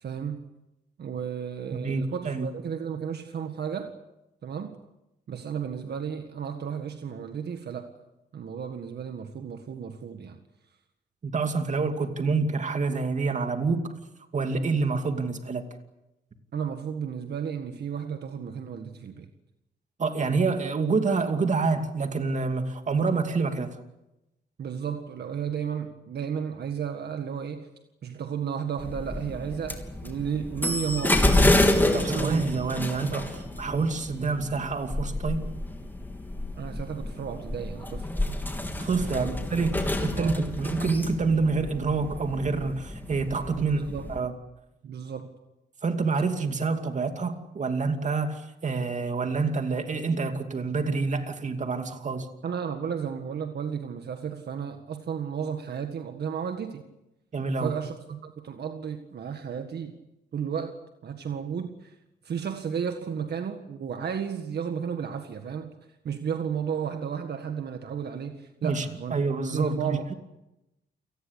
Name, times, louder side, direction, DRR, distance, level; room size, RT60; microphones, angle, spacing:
voice 1, 0.0-0.4 1.0-3.9 4.4-4.8 5.3-7.9 8.3-10.4 16.5-19.3 24.6-27.7 28.0-31.3 31.8-32.6 36.6-38.1 39.0-39.4 40.2-40.3 43.5-44.1 44.8-45.3 52.4-56.9 57.6-59.9 60.3-61.9 62.2-65.7 66.0-69.3 69.5-70.1, right 7 dB, 65° right, 6 dB, 1.8 m, -33 dB
voice 2, 1.7-2.5 11.2-14.0 14.3-15.6 20.0-23.7 31.9-35.4 38.8-43.8 44.1-44.3 45.8-52.3 57.3-57.7 68.6-70.1, right 4 dB, 40° right, 6 dB, 2.6 m, -27 dB
sound 1, 28.8-44.2, left 1 dB, 10° left, 3.2 m, -29 dB
29.0 x 19.0 x 8.3 m, 0.93 s
wide cardioid pair, 130°, 18 cm